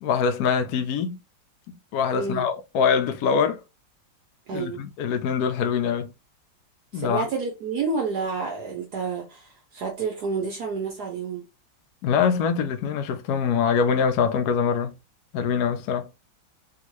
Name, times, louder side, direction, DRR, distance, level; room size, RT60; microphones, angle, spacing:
voice 1, 0.0-1.2 1.7-3.6 4.5-6.1 6.9-7.3 12.0-14.9 15.3-16.1, left 6 dB, 75° left, 0.9 m, -24 dB
voice 2, 2.1-2.4 4.5-4.8 6.9-11.5, right 4 dB, 60° right, 1.2 m, -29 dB
3.5 x 2.4 x 3.0 m
omnidirectional pair, 2.2 m